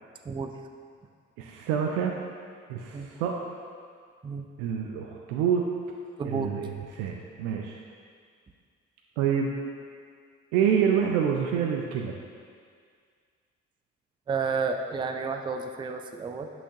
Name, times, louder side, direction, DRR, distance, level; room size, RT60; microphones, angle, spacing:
voice 1, 1.4-2.1 2.7-3.3 4.6-5.6 6.2-7.8 9.2-9.5 10.5-12.2, right 8 dB, 65° right, 1 dB, 0.6 m, -27 dB
voice 2, 6.2-6.5 14.3-16.5, right 5 dB, 15° right, 6 dB, 0.4 m, -31 dB
8.2 x 5.9 x 2.8 m, 2.1 s
figure-of-eight pair, 40°, 37 cm